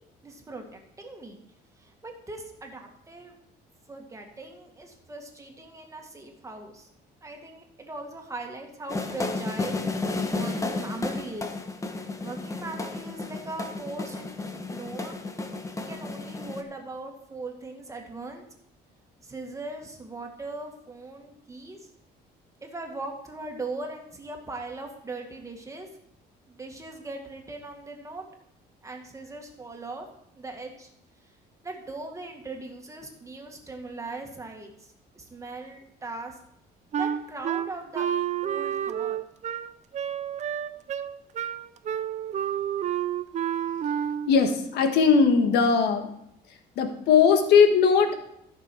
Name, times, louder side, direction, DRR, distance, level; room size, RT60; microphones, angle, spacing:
voice 1, 0.2-1.4 1.8-3.4 3.9-6.9 7.2-11.5 12.2-14.2 14.7-15.2 15.7-18.4 19.2-21.8 22.6-25.9 26.5-28.2 28.8-30.1 30.3-30.9 31.6-34.7 35.1-36.4 36.9-38.1 38.4-39.2, right 2 dB, 20° right, 2 dB, 1.9 m, -39 dB
sound 1, 8.9-16.6, left 3 dB, 20° left, 1.1 m, -32 dB
Wind instrument woodwind instrument, 36.9-44.4, right 9 dB, 45° right, 0.6 m, -29 dB
voice 2, 44.3-46.1 46.8-48.1, left 6 dB, 80° left, 6 dB, 1.4 m, -19 dB
14.0 x 6.2 x 4.5 m, 0.74 s
cardioid pair, 110°, 17 cm